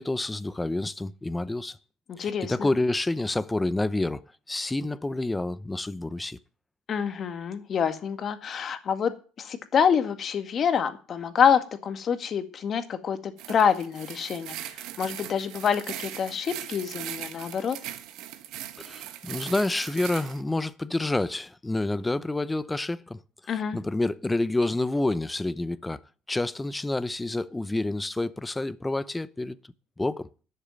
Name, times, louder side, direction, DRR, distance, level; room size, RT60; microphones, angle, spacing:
voice 1, 0.0-1.8 2.2-6.4 18.8-26.0 26.3-29.6 30.0-30.3, left 2 dB, 10° left, 0.7 m, -28 dB
voice 2, 2.1-2.7 6.9-17.8 23.5-23.8, left 7 dB, 40° left, 1.9 m, -27 dB
sound 1, 13.4-20.4, right 12 dB, 70° right, 1.4 m, -39 dB
11.5 x 6.7 x 9.1 m
supercardioid pair, 105°, 0 cm